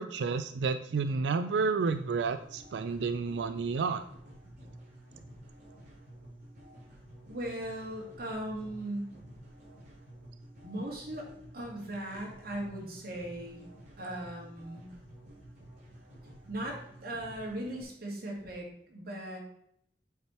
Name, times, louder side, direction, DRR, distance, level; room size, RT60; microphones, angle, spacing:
voice 1, 0.0-4.0, right 4 dB, 85° right, 10 dB, 0.4 m, -30 dB
sound 1, 1.8-17.8, right 1 dB, 45° right, 3.3 m, -52 dB
voice 2, 7.3-9.1 10.6-11.3 11.5-13.6 14.0-14.9 16.5-19.4, right 1 dB, 60° right, -2 dB, 2.4 m, -38 dB
8.1 x 4.4 x 4.6 m, 0.70 s
head